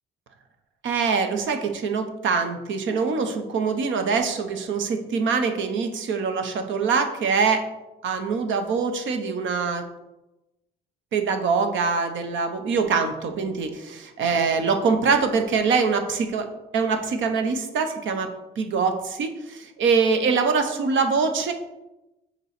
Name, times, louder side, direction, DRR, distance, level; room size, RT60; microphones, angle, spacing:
voice 1, 0.8-7.6 8.0-9.8 11.1-16.5 16.7-21.5, right 5 dB, 75° right, 7 dB, 0.9 m, -24 dB
6.5 x 3.1 x 5.9 m, 0.99 s
cardioid pair, 90°, 20 cm